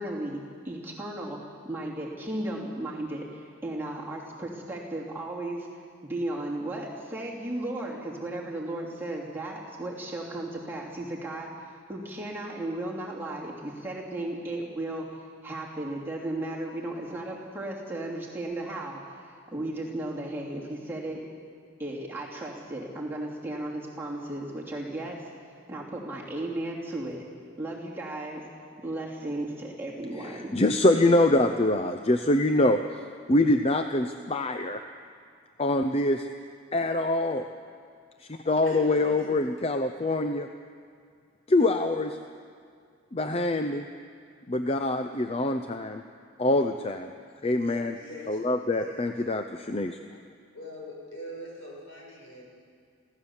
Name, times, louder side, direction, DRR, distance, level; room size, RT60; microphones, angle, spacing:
voice 1, 0.0-1.4 1.6-5.7 6.0-15.1 15.4-19.0 19.5-21.2 21.8-25.2 25.7-27.2 27.6-28.5 28.8-30.5, right 1 dB, 10° right, -4 dB, 2.7 m, -35 dB
voice 2, 30.2-32.8 33.3-34.8 35.6-36.3 36.7-37.5 38.2-40.5 41.5-42.2 43.1-43.9 44.5-46.0 46.4-47.1 47.4-48.0 48.3-50.0, left 2 dB, 30° left, 7 dB, 0.6 m, -24 dB
voice 3, 38.6-39.5 47.7-49.1 50.5-52.4, left 1 dB, 75° left, -3 dB, 7.0 m, -44 dB
24.5 x 16.5 x 7.2 m, 2.1 s
head